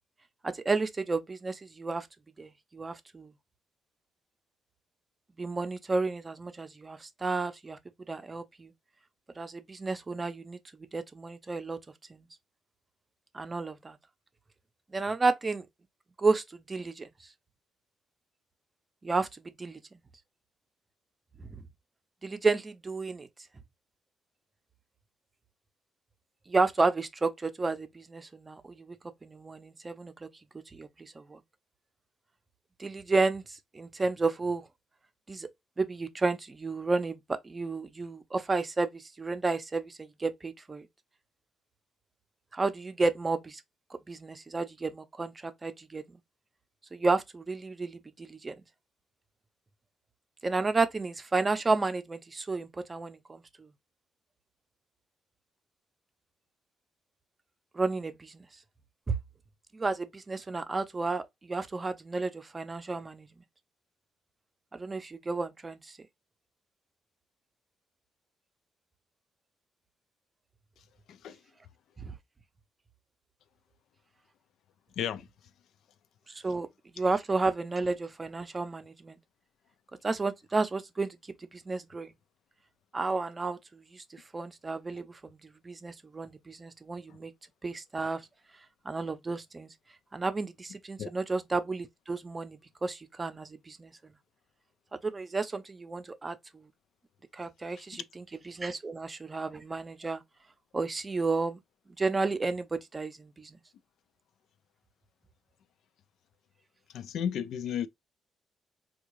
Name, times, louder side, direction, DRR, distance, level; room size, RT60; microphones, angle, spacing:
voice 1, 0.4-2.1 2.4-3.3 5.4-7.8 8.1-8.7 9.4-11.8 12.1-12.3 13.3-14.0 14.9-15.7 16.2-17.1 19.0-19.8 21.4-21.5 22.2-23.3 26.5-29.0 29.2-30.3 30.7-31.4 32.8-34.7 35.3-35.5 35.8-40.9 42.5-43.6 44.1-46.2 46.9-48.5 50.4-53.7 57.7-58.5 59.1-59.2 59.7-63.3 64.7-66.0 72.0-72.1 76.4-76.7 76.9-79.2 80.0-81.2 81.5-82.1 82.9-85.4 85.6-87.3 87.6-88.2 88.8-89.7 90.1-93.9 95.0-96.6 97.3-100.2 100.7-101.6 102.0-103.6, right 3 dB, 25° right, 0.5 m, -32 dB
voice 2, 71.1-71.4 75.0-75.3 91.0-91.1 97.9-98.0 106.9-107.9, left 9 dB, 75° left, 0.3 m, -33 dB
3.5 x 2.3 x 3.1 m
cardioid pair, 90°, 0 cm